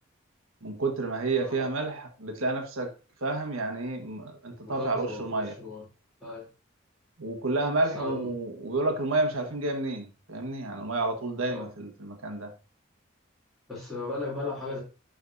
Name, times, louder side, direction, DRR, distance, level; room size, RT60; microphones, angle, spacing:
voice 1, 0.6-2.9 3.2-5.5 7.2-12.5, right 2 dB, 85° right, 1.5 m, -30 dB
voice 2, 4.6-5.8 6.2-6.4 7.8-8.3 11.4-11.7 13.7-14.8, left 3 dB, ahead, 2.8 m, -36 dB
11.0 x 4.0 x 2.7 m
head